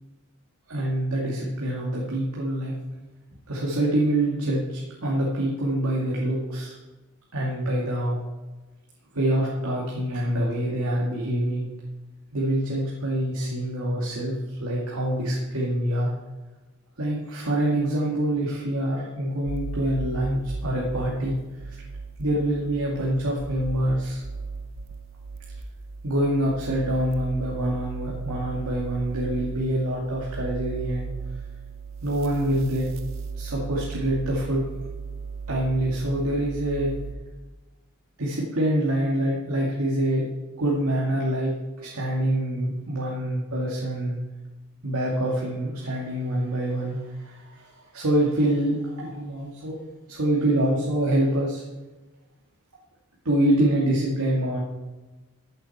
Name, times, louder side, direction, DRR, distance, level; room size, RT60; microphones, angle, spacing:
voice 1, 0.7-2.7 3.5-6.8 7.3-8.2 9.1-11.6 12.3-16.1 17.0-21.4 21.7-21.8 22.2-24.2 26.0-31.1 32.0-32.9 33.4-34.6 35.5-36.9 38.2-40.2 40.6-41.5 41.8-44.2 44.8-49.7 50.1-51.6 53.2-54.6, right 1 dB, 90° right, -4 dB, 2.3 m, -25 dB
sound 1, 19.5-37.1, right 4 dB, 65° right, 0.7 m, -36 dB
14.5 x 8.1 x 4.3 m, 1.2 s
head